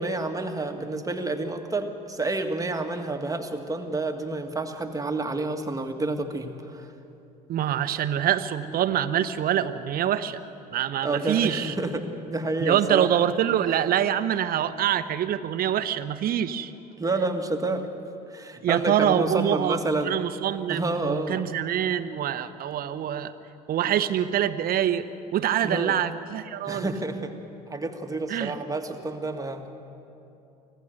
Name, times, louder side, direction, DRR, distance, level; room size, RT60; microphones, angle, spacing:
voice 1, 0.0-6.9 11.0-13.1 17.0-17.9 18.3-20.1 20.7-21.4 25.6-26.0 26.7-27.3 27.7-29.7, right 2 dB, 15° right, 5 dB, 1.8 m, -29 dB
voice 2, 7.5-10.4 10.7-11.7 12.6-16.7 18.6-23.3 23.7-25.1 25.3-26.9 28.3-28.6, right 10 dB, 50° right, 12 dB, 1.0 m, -25 dB
25.5 x 16.0 x 6.6 m, 2.8 s
hypercardioid pair, 65°, 20 cm